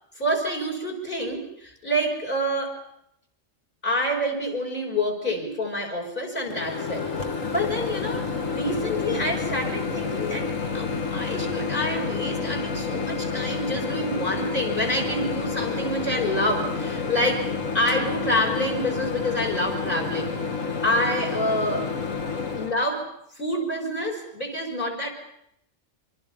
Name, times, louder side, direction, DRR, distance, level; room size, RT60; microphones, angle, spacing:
voice 1, 0.2-2.8 3.8-7.1 7.5-17.5 17.7-20.3 20.6-21.9 22.6-23.1 23.4-25.1, equal, 40° left, 3 dB, 5.9 m, -27 dB
Microwave oven, 6.5-22.7, left 5 dB, 80° left, 2.4 m, -29 dB
26.5 x 25.0 x 5.7 m, 0.75 s
omnidirectional pair, 1.3 m